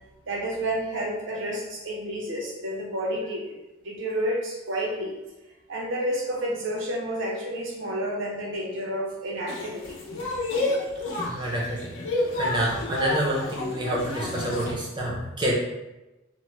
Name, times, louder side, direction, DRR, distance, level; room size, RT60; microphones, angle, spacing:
voice 1, 0.3-3.5 3.8-5.2 5.7-10.0, right 1 dB, 75° right, -2 dB, 0.7 m, -30 dB
sound 1, 9.5-14.7, left 2 dB, 75° left, 0.6 m, -30 dB
voice 2, 11.3-11.9 12.4-15.5, right 1 dB, 20° right, -3 dB, 0.5 m, -27 dB
2.9 x 2.1 x 3.2 m, 1.0 s
head